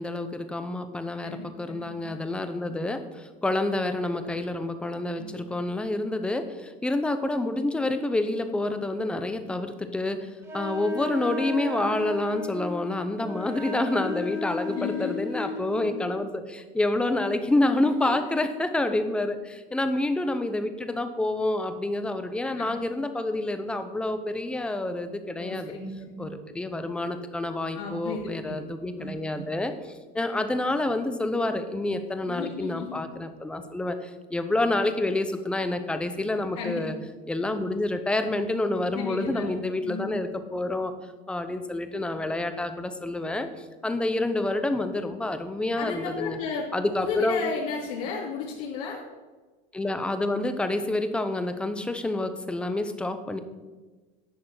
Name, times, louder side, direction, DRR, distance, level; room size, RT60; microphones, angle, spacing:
voice 1, 0.0-25.7 26.2-36.9 37.3-40.9 41.3-46.4 46.7-47.4 49.7-53.4, left 2 dB, 5° left, 9 dB, 0.6 m, -28 dB
voice 2, 1.2-2.1 5.2-5.3 14.7-15.6 18.0-18.1 22.6-22.8 25.4-26.3 27.7-28.5 29.0-29.4 32.3-33.0 36.6-36.8 38.9-39.5 39.8-40.1 45.8-46.6 47.0-49.0, left 4 dB, 75° left, -4 dB, 2.8 m, -34 dB
Wind instrument woodwind instrument, 10.4-16.0, left 3 dB, 15° right, 1.9 m, -34 dB
10.5 x 6.7 x 7.7 m, 1.3 s
cardioid pair, 175°, 18 cm